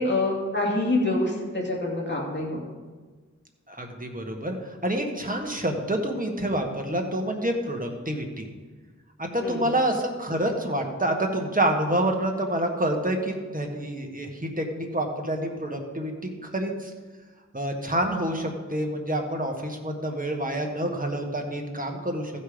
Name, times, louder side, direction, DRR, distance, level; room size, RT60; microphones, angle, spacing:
voice 1, 0.0-2.6 9.4-9.7, left 2 dB, 40° left, -3 dB, 2.5 m, -26 dB
voice 2, 3.7-8.5 9.2-16.9 17.5-22.3, right 1 dB, 30° right, 2 dB, 1.6 m, -28 dB
15.0 x 5.6 x 5.1 m, 1.4 s
wide cardioid pair, 40°, 29 cm